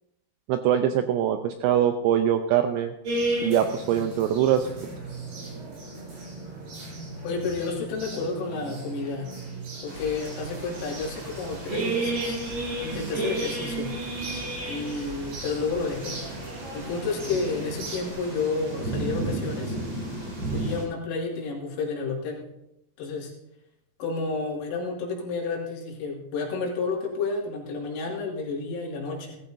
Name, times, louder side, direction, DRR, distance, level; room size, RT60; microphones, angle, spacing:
voice 1, 0.5-2.9 3.4-4.7, right 10 dB, 85° right, 7 dB, 2.6 m, -23 dB
sound 1, 3.0-18.1, right 2 dB, 50° right, 8.1 m, -34 dB
voice 2, 7.2-9.3 9.8-12.4 12.8-14.0 14.7-16.2 16.7-19.8 20.5-22.4 23.0-23.3 24.0-29.4, left 4 dB, 85° left, -2 dB, 4.8 m, -31 dB
sound 2, 8.8-20.4, right 3 dB, 65° right, 4.5 m, -46 dB
sound 3, 9.9-20.8, right 2 dB, 25° right, 4.3 m, -36 dB
17.0 x 14.5 x 2.6 m, 0.85 s
omnidirectional pair, 5.7 m